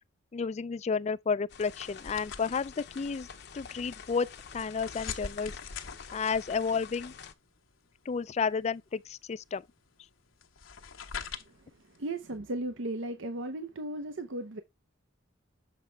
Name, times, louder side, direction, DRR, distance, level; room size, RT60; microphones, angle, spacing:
voice 1, 0.3-3.3 3.5-5.5 6.1-7.1 8.1-9.7, left 5 dB, 35° left, 0.3 m, -31 dB
sound 1, 1.5-7.3, left 6 dB, 55° left, 0.8 m, -48 dB
sound 2, 2.0-12.3, left 6 dB, 90° left, 1.1 m, -45 dB
voice 2, 11.3-14.6, right 1 dB, 70° right, 0.7 m, -36 dB
7.3 x 5.2 x 3.3 m
head